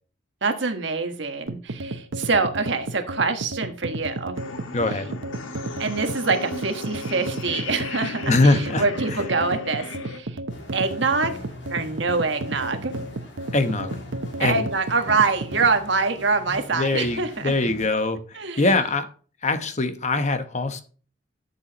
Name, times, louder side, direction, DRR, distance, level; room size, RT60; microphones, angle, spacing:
voice 1, 0.4-4.4 5.8-10.4 10.7-11.4 11.7-12.9 14.4-17.5 18.3-18.7, right 4 dB, 65° right, 7 dB, 1.4 m, -25 dB
sound 1, 1.5-15.8, right 2 dB, 85° right, 0.9 m, -33 dB
sound 2, 4.3-10.2, left 3 dB, 90° left, 1.3 m, -36 dB
voice 2, 4.7-5.1 8.3-8.8 9.1-9.2 13.5-13.9 14.4-14.6 16.7-19.1 19.4-20.8, left 2 dB, 35° left, 9 dB, 1.0 m, -22 dB
sound 3, 10.5-17.9, left 1 dB, 65° left, 2.4 m, -41 dB
12.0 x 7.0 x 3.0 m, 0.39 s
head